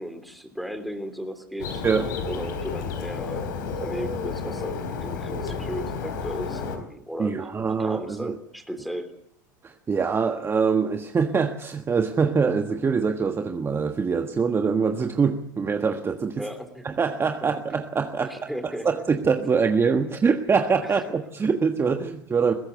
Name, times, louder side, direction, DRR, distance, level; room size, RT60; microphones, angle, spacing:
voice 1, 0.0-7.5 7.8-9.1 16.4-16.8 18.2-18.9 20.8-21.2, equal, ahead, 7 dB, 3.4 m, -36 dB
Bird, 1.6-6.8, left 5 dB, 75° left, 4.1 m, -31 dB
voice 2, 7.2-8.4 9.6-16.4 16.8-22.5, right 5 dB, 25° right, 5 dB, 1.5 m, -24 dB
21.0 x 16.5 x 7.9 m, 0.73 s
hypercardioid pair, 85°, 11 cm